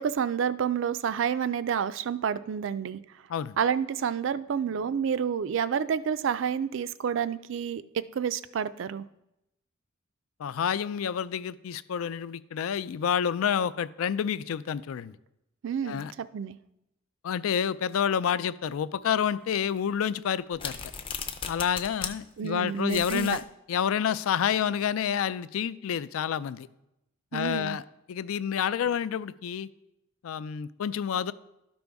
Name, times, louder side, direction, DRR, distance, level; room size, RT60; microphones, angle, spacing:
voice 1, 0.0-3.0 3.6-9.0 15.6-16.6 22.4-23.4 27.3-27.8, right 7 dB, 65° right, 15 dB, 0.3 m, -29 dB
voice 2, 10.4-15.2 15.8-16.1 17.2-20.8 21.5-23.4 23.7-26.7 27.3-27.8 28.1-29.7 30.2-31.3, left 8 dB, 85° left, 17 dB, 0.4 m, -29 dB
sound 1, 20.5-22.1 22.4-22.5 22.9-23.4, left 6 dB, 25° left, 0.5 m, -36 dB
12.5 x 5.3 x 3.5 m, 0.88 s
head